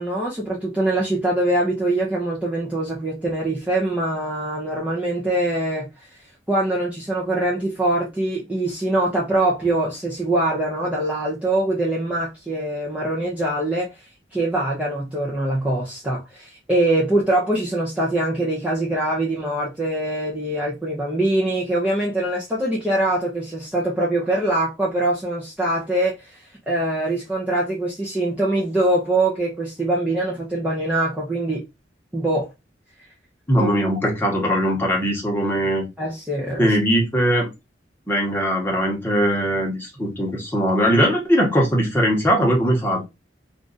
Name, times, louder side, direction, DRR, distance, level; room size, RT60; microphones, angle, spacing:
voice 1, 0.0-6.1 6.5-13.9 14.3-26.4 26.7-31.6 32.1-32.5 33.6-33.7 36.0-36.7, right 1 dB, 5° right, 0.6 m, -23 dB
voice 2, 33.5-35.8 36.6-37.5 38.1-43.0, equal, 10° left, 1.0 m, -20 dB
2.5 x 2.4 x 3.9 m
head